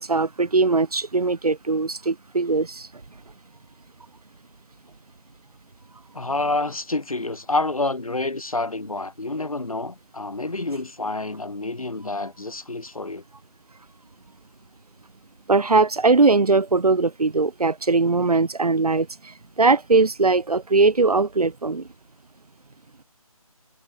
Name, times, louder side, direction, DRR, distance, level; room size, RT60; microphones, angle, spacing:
voice 1, 0.0-2.9 15.5-21.9, right 3 dB, 85° right, 1.1 m, -20 dB
voice 2, 6.1-13.2, left 2 dB, 70° left, 5.6 m, -28 dB
figure-of-eight pair, 175°, 19 cm